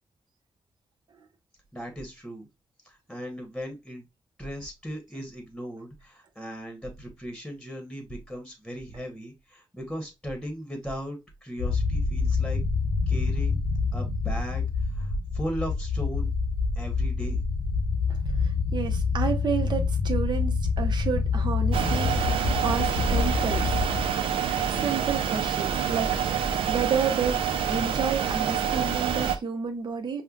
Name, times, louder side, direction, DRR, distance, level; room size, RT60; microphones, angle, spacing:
voice 1, 1.7-2.5 2.8-4.0 4.4-12.6 13.1-13.6 13.9-16.3 16.7-17.5, equal, 5° left, 1.1 m, -37 dB
sound 1, 11.6-24.1, left 4 dB, 75° left, 0.8 m, -26 dB
voice 2, 18.1-23.8 24.7-30.2, right 6 dB, 55° right, 0.8 m, -31 dB
sound 2, 21.7-29.4, right 8 dB, 80° right, 0.5 m, -27 dB
5.4 x 2.2 x 2.4 m
cardioid pair, 95°, 9 cm